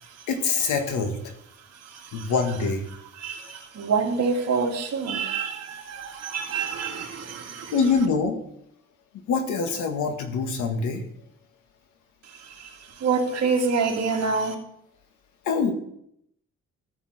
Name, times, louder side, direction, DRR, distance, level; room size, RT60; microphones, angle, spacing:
voice 1, 0.3-1.2 2.1-2.8 7.7-8.4 9.3-11.0 15.4-15.7, left 5 dB, 90° left, 5 dB, 1.8 m, -24 dB
voice 2, 1.9-2.3 3.2-7.7 12.5-12.7 13.0-14.5, right 5 dB, 60° right, 1 dB, 2.4 m, -27 dB
14.0 x 7.3 x 4.3 m, 0.73 s
cardioid pair, 130°, 29 cm